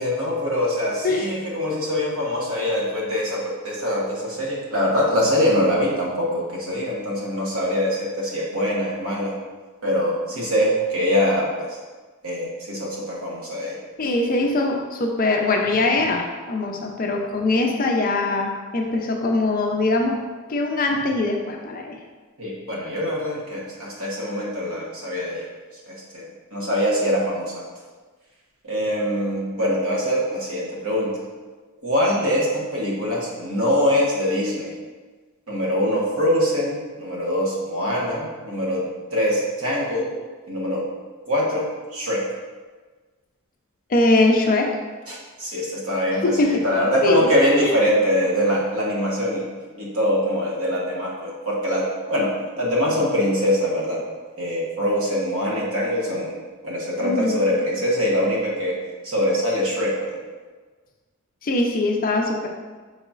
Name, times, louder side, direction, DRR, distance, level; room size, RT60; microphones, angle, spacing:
voice 1, 0.0-9.4 9.8-11.8 12.2-13.8 22.4-25.5 25.9-27.7 28.6-31.1 31.8-34.8 35.5-38.8 39.1-40.1 40.5-40.8 41.2-42.2 45.1-49.5 49.8-52.3 52.6-54.0 54.4-56.4 56.6-58.7 59.0-60.2, equal, 70° right, -4 dB, 1.1 m, -23 dB
voice 2, 14.0-20.2 20.5-22.0 43.9-44.7 46.2-46.6 47.0-47.3 47.6-47.7 57.0-57.4 61.4-62.5, left 2 dB, 40° left, 1 dB, 0.5 m, -22 dB
4.7 x 4.0 x 2.4 m, 1.4 s
head